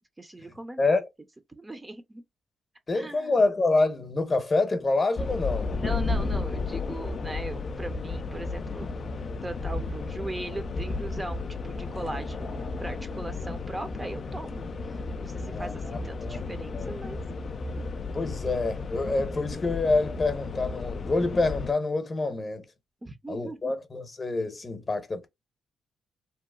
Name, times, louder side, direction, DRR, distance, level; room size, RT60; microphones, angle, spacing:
voice 1, 0.2-0.8 1.6-2.2 2.9-3.4 5.7-9.0 9.4-17.2 23.0-23.7, right 2 dB, 20° right, 0.5 m, -39 dB
voice 2, 2.9-5.7 15.5-16.5 16.7-16.9 18.1-22.7 23.3-25.3, left 3 dB, 35° left, 0.8 m, -27 dB
sound 1, 5.2-21.7, left 3 dB, 55° left, 0.3 m, -33 dB
2.8 x 2.0 x 2.3 m
cardioid pair, 65°, 0 cm